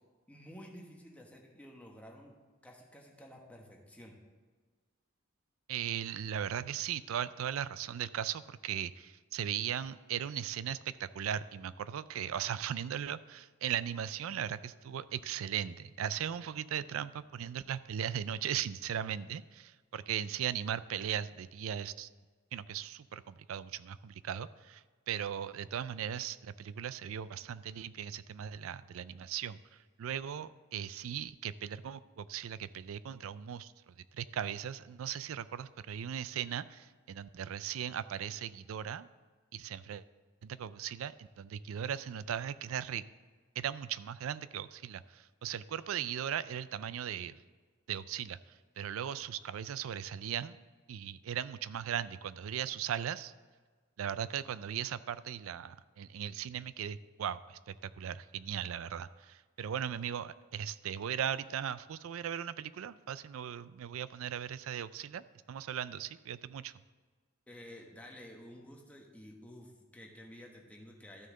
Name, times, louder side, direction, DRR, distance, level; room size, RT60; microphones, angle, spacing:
voice 1, 0.3-2.3 2.6-4.1 67.5-71.3, equal, 5° left, 0 dB, 1.3 m, -52 dB
voice 2, 5.7-22.1 22.5-29.6 30.0-39.1 39.5-40.0 40.4-43.1 43.6-47.3 47.9-48.4 48.8-50.6 50.9-53.3 54.0-66.7, right 9 dB, 70° right, 16 dB, 0.4 m, -38 dB
13.0 x 6.4 x 3.8 m, 1.4 s
head